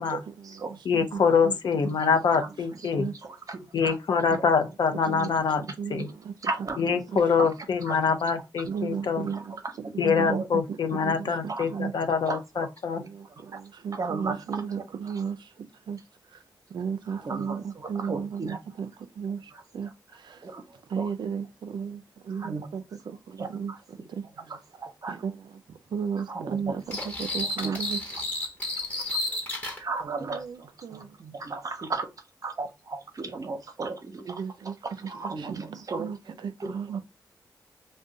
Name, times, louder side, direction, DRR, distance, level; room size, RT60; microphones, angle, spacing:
voice 1, 0.0-1.6 1.8-1.9 3.0-3.1 4.3-4.5 5.0-6.3 6.9-7.2 8.7-9.6 9.9-11.9 13.0-15.5 15.9-16.0 16.3-16.4 16.7-20.6 20.9-24.3 25.1-28.0 28.9-29.4 30.2-31.2 34.3-37.0, right 6 dB, 80° right, 0.4 m, -35 dB
voice 2, 0.9-3.1 3.7-5.6 5.9-6.1 6.8-9.3 10.0-13.0, left 5 dB, 70° left, 0.5 m, -25 dB
voice 3, 3.5-4.0 6.4-6.8 7.4-7.5 7.9-8.0 9.3-9.4 10.3-10.5 11.5-11.6 12.3-12.7 13.5-13.6 13.9-14.6 17.1-18.6 20.4-20.7 21.0-21.1 22.4-22.7 23.4-23.8 24.4-24.5 24.8-25.1 26.3-26.7 27.6-27.8 29.8-32.1 32.4-34.3 35.1-36.1 36.6-36.7, right 3 dB, 50° right, 0.7 m, -34 dB
sound 1, 26.9-29.8, left 1 dB, 20° left, 1.0 m, -31 dB
2.5 x 2.1 x 3.6 m
cardioid pair, 65°, 8 cm